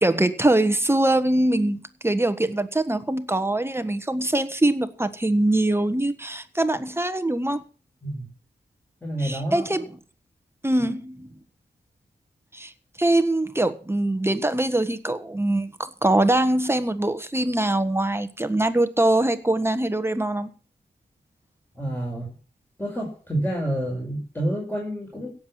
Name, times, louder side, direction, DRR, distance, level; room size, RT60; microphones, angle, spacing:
voice 1, 0.0-7.6 9.2-9.8 10.6-11.3 12.5-12.7 13.0-20.5, right 1 dB, 15° right, 1.4 m, -23 dB
voice 2, 9.0-9.8 21.8-22.3 22.8-25.3, right 1 dB, 10° left, 5.8 m, -28 dB
17.0 x 7.5 x 6.0 m
wide cardioid pair, 80°, 18 cm